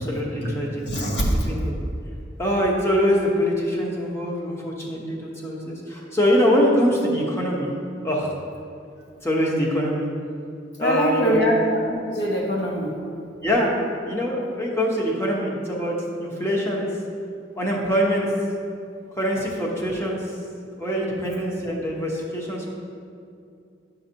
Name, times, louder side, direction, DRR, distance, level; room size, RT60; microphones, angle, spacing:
voice 1, 0.0-1.2 1.5-1.7 2.4-7.7 8.0-8.3 9.2-10.1 10.8-11.5 13.4-13.8 14.1-16.9 17.5-18.3 19.2-20.2 20.8-22.7, equal, 15° left, -3 dB, 1.1 m, -23 dB
voice 2, 0.8-1.5 10.8-12.9, equal, 70° left, -2 dB, 1.3 m, -23 dB
11.0 x 5.7 x 2.9 m, 2.5 s
head